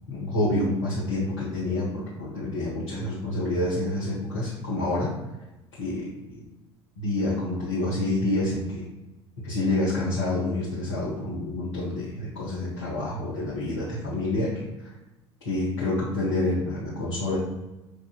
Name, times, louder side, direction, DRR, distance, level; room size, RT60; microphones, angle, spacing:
voice 1, 0.1-5.1 5.8-6.4 7.0-8.8 9.4-14.5 14.8-14.9 15.4-17.4, left 2 dB, 75° left, -9 dB, 1.1 m, -28 dB
6.5 x 2.6 x 2.4 m, 1.0 s
figure-of-eight pair, 65°, 15 cm